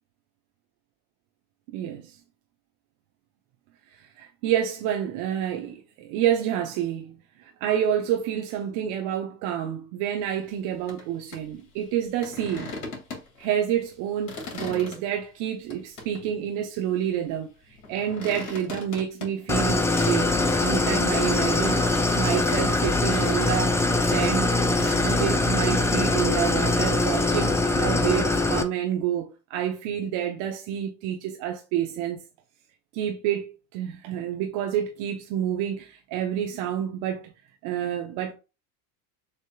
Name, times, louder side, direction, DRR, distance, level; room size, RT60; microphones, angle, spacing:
voice 1, 1.7-2.2 3.9-12.7 13.4-17.5 17.9-24.5 24.8-32.2 32.9-37.3 37.6-38.3, right 10 dB, 55° right, 0.9 m, -28 dB
sound 1, 10.9-11.0 11.3-11.4 12.2-13.5 13.9-15.0 15.7-16.3 17.7-20.6 21.1-22.8 23.1-25.3, left 3 dB, 40° left, 2.5 m, -38 dB
Idling, 19.5-28.6, left 2 dB, 5° left, 0.4 m, -23 dB
6.6 x 2.9 x 2.3 m
hypercardioid pair, 80°, 45 cm